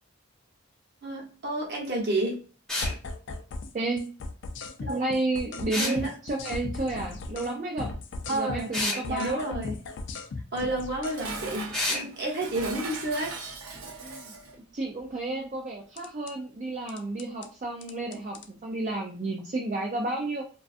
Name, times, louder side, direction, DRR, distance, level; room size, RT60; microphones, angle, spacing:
voice 1, 1.0-2.4 4.8-5.0 5.8-6.1 8.3-8.7 9.1-9.7 10.5-13.4, right 1 dB, 50° right, 0.8 m, -30 dB
sound 1, 2.7-3.0 5.7-6.0 8.7-9.0 11.7-12.0, left 2 dB, 5° left, 0.7 m, -28 dB
sound 2, 2.8-3.7 4.0-7.5 7.8-11.2 16.0-16.3 16.9-17.5 17.8-18.5, left 3 dB, 55° left, 0.3 m, -37 dB
voice 2, 3.7-4.1 4.9-7.9 8.3-9.4 13.9-14.4 14.7-20.4, right 2 dB, 35° right, 0.3 m, -31 dB
Dishes pots and pans, 10.7-14.6, right 4 dB, 80° right, 0.7 m, -40 dB
2.5 x 2.3 x 2.4 m
head